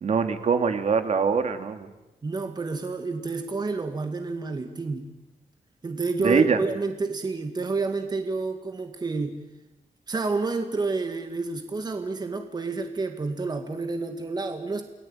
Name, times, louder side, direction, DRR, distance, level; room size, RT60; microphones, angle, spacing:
voice 1, 0.0-1.9 6.2-6.6, right 6 dB, 55° right, 8 dB, 2.6 m, -23 dB
voice 2, 2.2-5.1 5.8-9.4 10.1-14.8, right 3 dB, 30° right, 6 dB, 2.2 m, -29 dB
30.0 x 19.5 x 9.1 m, 1.0 s
wide cardioid pair, 135°, 14 cm